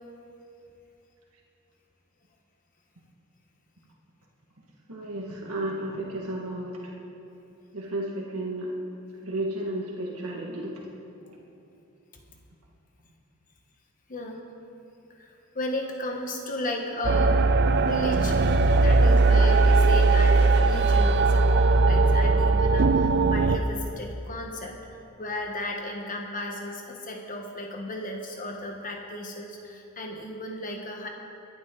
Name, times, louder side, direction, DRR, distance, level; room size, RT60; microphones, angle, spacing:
voice 1, 4.9-6.9 7.7-8.7 9.2-10.8, right 1 dB, 90° right, -3 dB, 1.8 m, -33 dB
voice 2, 14.1-14.4 15.2-17.5 17.9-24.8 25.2-31.1, left 1 dB, 40° left, 2 dB, 1.2 m, -34 dB
sound 1, 17.0-23.6, right 3 dB, 50° right, 0.6 m, -19 dB
23.5 x 11.0 x 3.9 m, 2.9 s
head